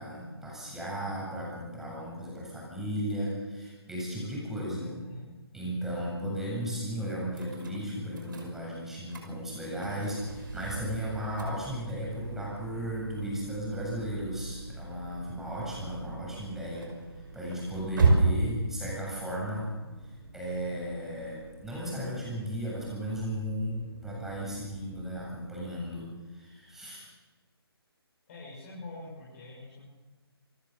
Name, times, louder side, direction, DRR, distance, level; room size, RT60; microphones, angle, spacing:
voice 1, 0.0-4.9 5.5-16.9 17.2-19.7 20.0-27.0, equal, 5° right, -5 dB, 7.7 m, -35 dB
voice 2, 4.8-5.3 28.3-29.8, left 2 dB, 35° left, -5 dB, 6.8 m, -45 dB
sound 1, 7.3-25.3, right 3 dB, 50° right, 5.8 m, -35 dB
28.0 x 13.5 x 7.2 m, 1.2 s
figure-of-eight pair, 145°, 13 cm